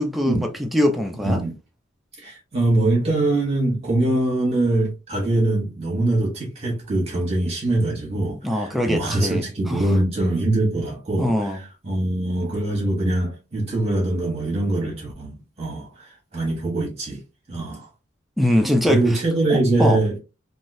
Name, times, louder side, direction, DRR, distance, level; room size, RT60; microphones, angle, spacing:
voice 1, 0.0-1.4 8.4-9.9 11.2-11.6 18.4-19.2 19.5-20.0, left 1 dB, ahead, 0.5 m, -22 dB
voice 2, 1.2-1.5 2.2-17.2 17.5-17.9 18.8-20.2, right 2 dB, 35° right, 1.2 m, -23 dB
3.5 x 2.6 x 2.6 m
head